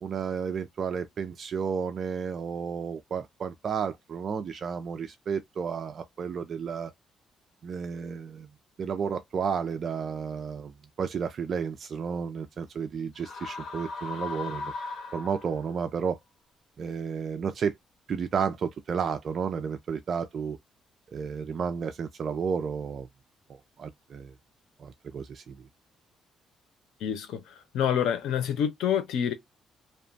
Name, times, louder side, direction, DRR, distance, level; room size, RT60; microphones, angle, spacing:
voice 1, 0.0-6.9 7.6-8.5 8.8-14.7 15.1-16.2 16.8-17.7 18.1-20.6 21.1-23.1 23.8-24.3 24.8-25.6, right 6 dB, 50° right, 0.4 m, -32 dB
sound 1, 13.2-15.8, left 3 dB, 65° left, 1.0 m, -38 dB
voice 2, 27.0-27.4 27.7-29.3, left 9 dB, 85° left, 0.7 m, -27 dB
2.9 x 2.2 x 2.6 m
cardioid pair, 105°, 0 cm